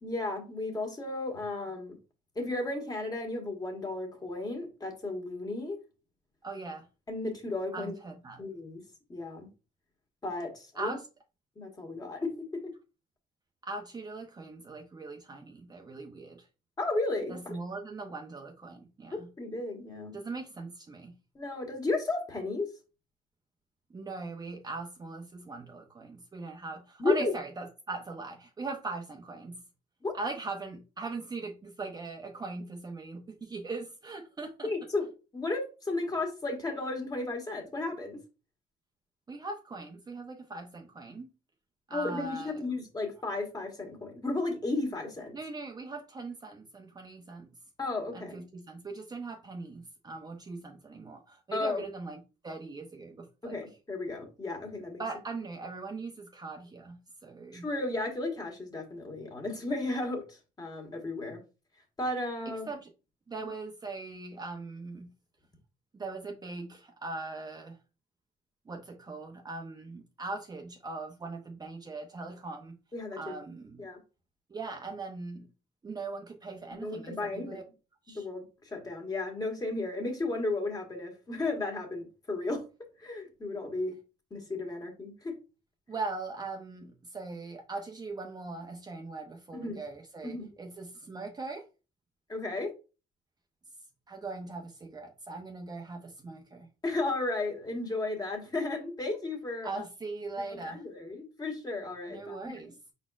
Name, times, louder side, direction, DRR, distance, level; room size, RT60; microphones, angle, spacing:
voice 1, 0.0-1.9 2.3-5.8 7.1-7.9 8.4-8.8 9.1-9.5 10.2-11.0 11.6-12.6 16.8-17.5 19.4-20.2 21.3-22.7 27.0-27.3 30.0-30.1 34.6-35.1 35.3-38.2 41.9-45.3 47.8-48.3 51.5-51.8 53.4-55.0 57.5-61.4 62.0-62.7 72.9-73.4 73.8-74.0 76.7-77.6 78.1-82.6 83.0-83.9 84.3-85.4 89.5-89.8 90.2-90.5 92.3-92.7 96.8-99.8 100.6-102.5, left 2 dB, 25° left, 1.5 m, -34 dB
voice 2, 6.4-6.9 7.7-8.4 10.7-11.1 13.6-16.5 17.3-19.3 20.1-21.1 23.9-29.6 30.1-34.7 39.3-41.3 41.9-42.6 45.3-47.5 48.1-53.6 55.0-57.7 62.5-62.9 63.3-65.1 65.9-67.8 68.7-72.8 73.1-73.9 74.5-75.5 75.8-77.6 78.1-78.3 85.9-91.7 94.1-96.7 99.6-100.8 102.1-102.7, right 3 dB, 25° right, 0.7 m, -40 dB
5.1 x 4.1 x 2.4 m
cardioid pair, 110°, 17 cm